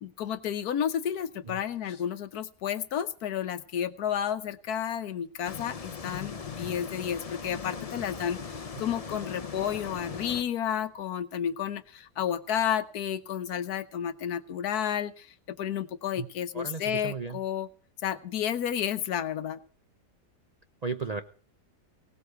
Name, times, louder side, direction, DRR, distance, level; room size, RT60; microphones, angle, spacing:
voice 1, 0.0-17.7 18.0-19.6, left 9 dB, 70° left, 11 dB, 1.3 m, -31 dB
voice 2, 1.4-2.0 16.2-16.3 16.5-17.4 20.8-21.2, right 5 dB, 50° right, 8 dB, 0.4 m, -35 dB
sound 1, 5.4-10.4, left 5 dB, 35° left, 0.6 m, -39 dB
17.5 x 8.2 x 6.8 m, 0.43 s
omnidirectional pair, 1.8 m